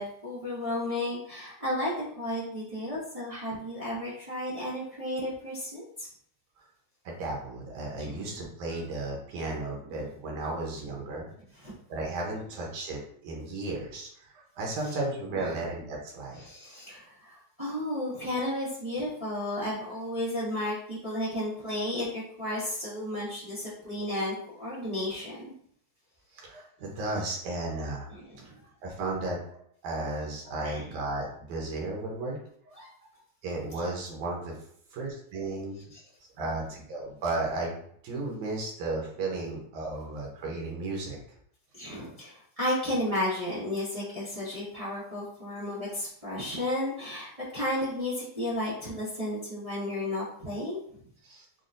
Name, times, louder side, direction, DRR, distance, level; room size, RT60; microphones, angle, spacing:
voice 1, 0.0-6.1 8.0-8.4 9.8-10.1 11.6-11.7 14.9-15.0 15.4-15.6 16.4-25.4 28.1-28.6 30.0-30.1 30.6-31.0 32.7-32.9 35.9-36.0 41.7-50.8, left 1 dB, 40° right, -10 dB, 0.4 m, -33 dB
voice 2, 7.1-11.3 11.9-16.4 26.3-28.1 28.8-32.4 32.7-32.8 33.4-34.5 34.9-35.8 36.4-41.2 51.2-51.5, right 2 dB, 75° right, -2 dB, 2.4 m, -34 dB
6.0 x 2.3 x 2.6 m, 0.64 s
omnidirectional pair, 3.4 m